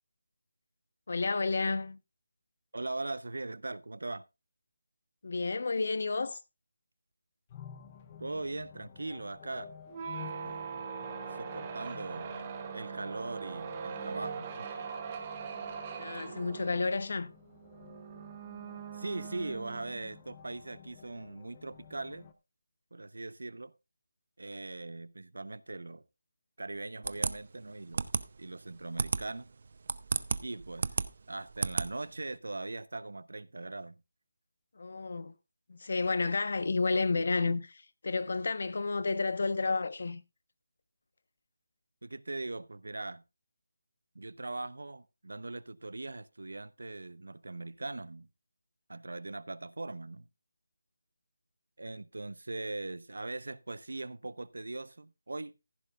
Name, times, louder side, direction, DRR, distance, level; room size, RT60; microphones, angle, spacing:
voice 1, 1.1-2.0 5.2-6.4 16.0-17.3 34.7-35.3 35.7-40.2, left 3 dB, 50° left, 1.1 m, -31 dB
voice 2, 2.7-4.2 8.2-9.7 10.2-10.8 11.3-12.3 12.7-14.7 18.9-22.3 22.9-23.7 24.4-26.0 26.6-28.1 28.4-29.5 30.4-30.9 31.3-34.0 42.0-43.2 44.1-48.3 48.9-50.3 51.8-55.6, right 2 dB, 90° right, 0.8 m, -40 dB
sound 1, 7.5-22.3, left 9 dB, 15° left, 0.8 m, -53 dB
sound 2, 9.9-20.2, right 6 dB, 15° right, 1.1 m, -41 dB
sound 3, 27.0-32.4, right 4 dB, 40° right, 0.6 m, -34 dB
15.0 x 11.0 x 2.4 m
figure-of-eight pair, 175°, 0 cm